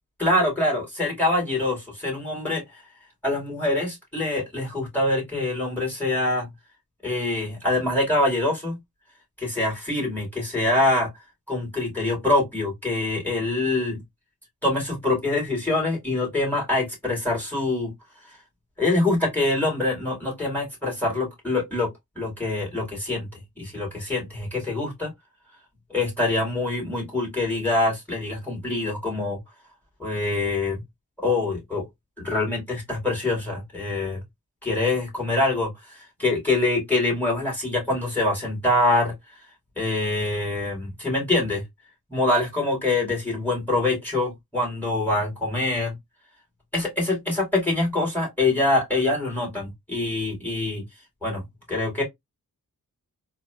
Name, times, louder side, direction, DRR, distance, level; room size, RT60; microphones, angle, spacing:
voice 1, 0.2-2.6 3.2-6.5 7.0-8.8 9.4-11.1 11.5-14.0 14.6-17.9 18.8-21.9 22.2-23.3 23.6-25.1 25.9-29.4 30.0-30.8 31.2-31.8 32.2-34.2 34.6-39.1 39.8-41.6 42.1-45.9 46.7-50.8 51.2-51.4 51.7-52.0, left 2 dB, 5° left, 2.2 m, -25 dB
3.9 x 2.2 x 2.3 m
cardioid pair, 65°, 36 cm